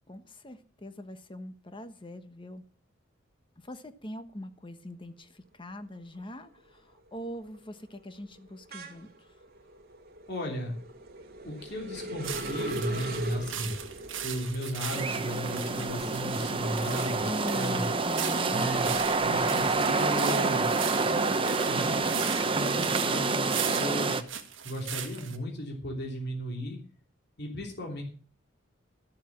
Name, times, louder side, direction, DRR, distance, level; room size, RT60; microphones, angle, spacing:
voice 1, 0.1-2.6 3.6-9.1 17.2-18.8, left 1 dB, 25° left, 9 dB, 1.2 m, -41 dB
sound 1, 5.8-6.2 6.6-17.8 18.2-20.0, right 1 dB, 50° right, 2.3 m, -41 dB
voice 2, 10.3-10.7 11.4-13.8 14.2-17.8 18.5-18.9 19.2-20.7 21.1-24.2 24.6-26.8 27.4-28.0, equal, 55° left, 0 dB, 3.2 m, -35 dB
sound 2, 12.2-25.4, right 9 dB, 65° right, 1.5 m, -39 dB
sound 3, 14.9-24.2, right 3 dB, 25° right, 1.0 m, -28 dB
13.0 x 7.6 x 7.3 m, 0.43 s
head